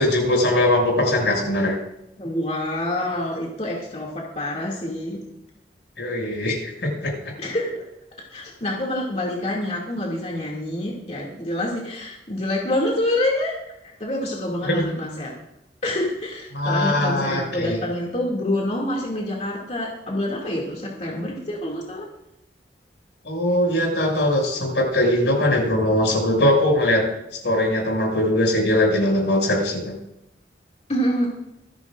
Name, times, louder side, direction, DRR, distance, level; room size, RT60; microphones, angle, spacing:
voice 1, 0.0-1.8 6.0-7.3 14.6-14.8 16.5-17.8 23.2-27.0 27.4-29.9, left 1 dB, 85° left, -1 dB, 6.4 m, -21 dB
voice 2, 2.2-5.2 7.4-7.8 8.3-13.5 13.8-15.3 15.8-22.1 30.9-31.3, left 1 dB, 40° left, -2 dB, 2.4 m, -26 dB
25.5 x 11.0 x 2.5 m, 0.85 s
head